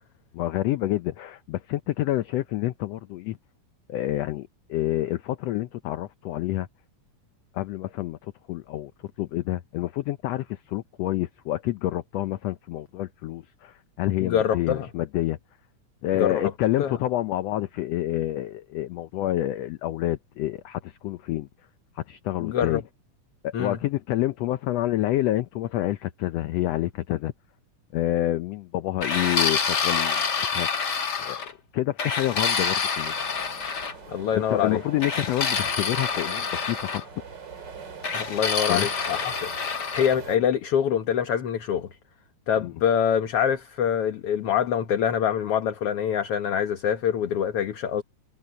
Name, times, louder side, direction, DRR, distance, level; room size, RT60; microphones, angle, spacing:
voice 1, 0.3-3.4 3.9-6.7 7.5-8.9 9.2-15.4 16.0-21.5 22.0-22.8 23.4-27.3 27.9-30.7 31.2-31.5 31.7-33.1 34.3-37.0 38.7-38.9 42.6-42.7, left 14 dB, 75° left, 1.5 m, -28 dB
voice 2, 14.2-14.9 16.1-16.4 16.8-17.0 22.4-22.8 23.5-23.8 34.1-34.8 38.1-39.5 39.9-41.9 42.5-48.0, left 8 dB, 55° left, 1.9 m, -25 dB
sound 1, 29.0-31.5 32.0-33.9 35.0-37.0 38.0-40.2, left 5 dB, 35° left, 2.1 m, -27 dB
sound 2, 33.0-40.4, right 5 dB, 35° right, 2.9 m, -43 dB
omnidirectional pair, 3.7 m